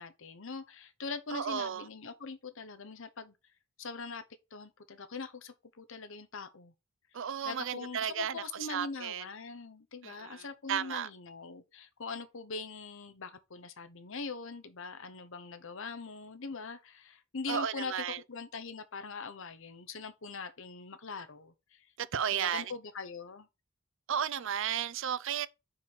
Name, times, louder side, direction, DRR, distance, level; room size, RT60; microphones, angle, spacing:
voice 1, 0.0-3.3 3.8-4.2 4.5-6.7 7.2-21.9 22.3-23.5, left 4 dB, 65° left, 0.9 m, -42 dB
voice 2, 1.3-1.8 7.1-8.4 8.7-9.2 10.0-11.1 17.5-18.2 22.0-22.7 24.1-25.5, right 8 dB, 65° right, 0.5 m, -34 dB
5.5 x 4.8 x 6.2 m
head